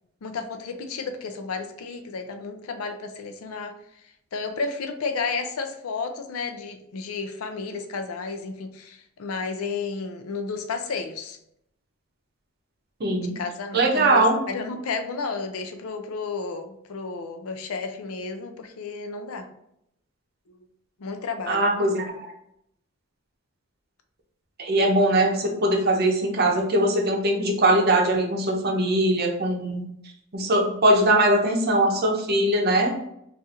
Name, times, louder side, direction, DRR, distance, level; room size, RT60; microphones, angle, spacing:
voice 1, 0.2-3.7 4.3-11.4 13.2-19.5 21.0-21.6, left 4 dB, 90° left, 6 dB, 0.5 m, -32 dB
voice 2, 13.0-13.4 13.7-14.4 21.5-22.1 24.6-29.8 30.3-32.9, right 1 dB, 50° right, 2 dB, 0.6 m, -21 dB
4.1 x 2.5 x 2.4 m, 0.77 s
head